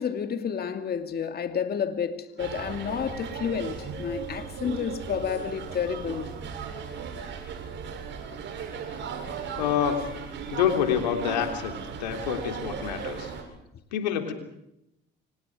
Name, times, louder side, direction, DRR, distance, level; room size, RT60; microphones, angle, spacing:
voice 1, 0.0-6.3 7.1-7.3 10.5-10.6, left 7 dB, 50° left, 2.4 m, -30 dB
sound 1, 2.4-13.4, right 6 dB, 60° right, 7.5 m, -36 dB
voice 2, 9.6-10.0 10.5-13.3 13.9-14.3, left 9 dB, 90° left, 3.4 m, -27 dB
29.5 x 26.0 x 4.9 m
hypercardioid pair, 60°, 21 cm